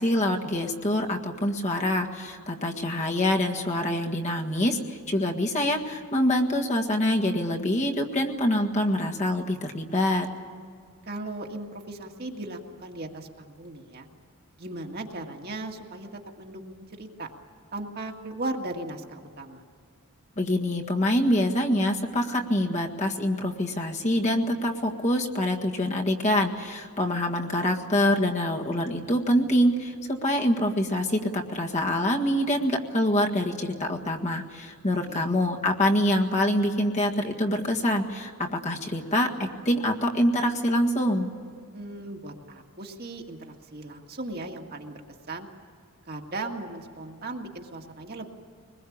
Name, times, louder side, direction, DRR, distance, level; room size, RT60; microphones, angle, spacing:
voice 1, 0.0-10.3 20.4-41.3, left 1 dB, 30° left, 1 dB, 1.7 m, -25 dB
voice 2, 11.0-14.1 14.6-17.3 17.7-19.6 35.1-35.3 41.7-45.0 45.3-45.5 46.1-48.3, right 2 dB, 45° right, 1 dB, 2.0 m, -37 dB
24.0 x 21.0 x 8.7 m, 2.2 s
head